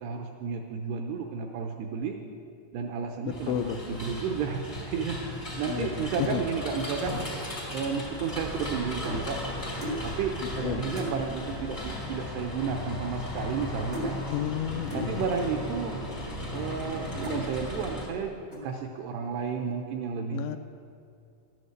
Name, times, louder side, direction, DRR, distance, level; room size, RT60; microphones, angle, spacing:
voice 1, 0.0-2.2 2.7-5.2 5.6-7.2 7.7-9.4 10.0-14.2 14.9-16.0 16.5-18.4 18.6-20.4, right 6 dB, 80° right, 4 dB, 2.5 m, -32 dB
voice 2, 3.2-4.0 5.7-6.4 10.6-11.1 14.3-15.3 20.3-20.6, left 9 dB, 85° left, 8 dB, 2.7 m, -32 dB
sound 1, 3.3-18.0, left 1 dB, 60° left, 0.3 m, -36 dB
sound 2, 8.5-9.3 9.8-10.1 10.5-10.6 10.9-11.2 12.1-12.2 12.4-12.7 13.0-13.7 13.9-14.2 14.9-15.1 15.8-15.9 16.5-16.9 17.2-17.5 18.0-18.2 18.5-18.9, equal, 60° right, 0.5 m, -37 dB
12.0 x 9.6 x 7.8 m, 2.5 s
omnidirectional pair, 5.4 m